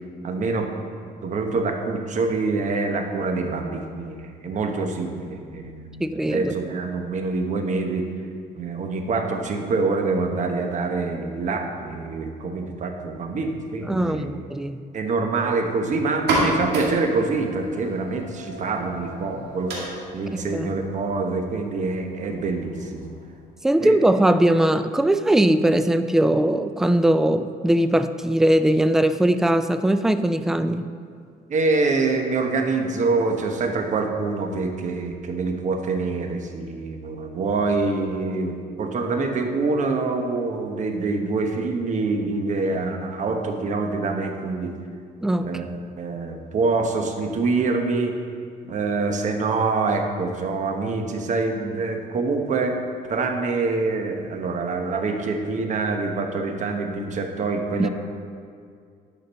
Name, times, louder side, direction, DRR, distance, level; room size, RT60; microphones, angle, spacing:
voice 1, 0.2-0.7 1.2-6.0 6.3-8.1 8.5-14.3 14.9-23.1 23.8-24.0 31.5-44.7 45.4-45.7 45.9-48.1 48.7-52.8 53.1-57.9, right 3 dB, 45° right, 4 dB, 1.0 m, -25 dB
voice 2, 6.0-6.5 13.9-14.8 20.3-20.7 23.6-30.9 45.2-45.5 57.8-57.9, right 1 dB, 5° right, 10 dB, 0.3 m, -20 dB
sound 1, 16.1-23.5, right 1 dB, 80° right, 2.2 m, -31 dB
11.0 x 5.1 x 4.2 m, 2.2 s
cardioid pair, 110°, 17 cm